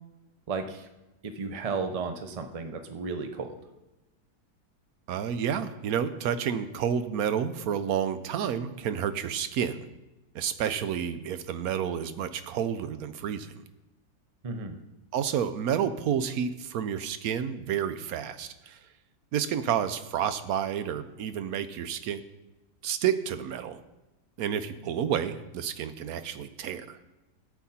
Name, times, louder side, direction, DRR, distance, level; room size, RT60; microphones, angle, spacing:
voice 1, 0.5-0.9 1.2-3.6 14.4-14.8, right 4 dB, 35° right, 7 dB, 0.6 m, -34 dB
voice 2, 5.1-9.8 10.3-13.5 15.1-18.8 19.3-22.2 22.8-23.8 24.4-27.0, right 8 dB, 70° right, 11 dB, 1.1 m, -30 dB
13.5 x 8.3 x 4.3 m, 1.0 s
omnidirectional pair, 1.7 m